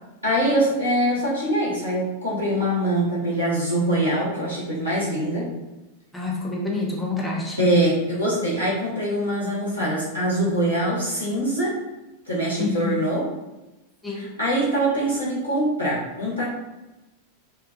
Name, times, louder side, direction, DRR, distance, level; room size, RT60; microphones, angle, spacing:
voice 1, 0.2-5.5 7.6-11.7 12.3-13.3 14.1-16.4, right 1 dB, 90° left, -9 dB, 1.1 m, -23 dB
voice 2, 6.1-7.7 12.6-13.0 14.0-14.3, left 3 dB, 10° left, -3 dB, 0.6 m, -27 dB
2.8 x 2.2 x 2.6 m, 1.0 s
figure-of-eight pair, 90°, 0 cm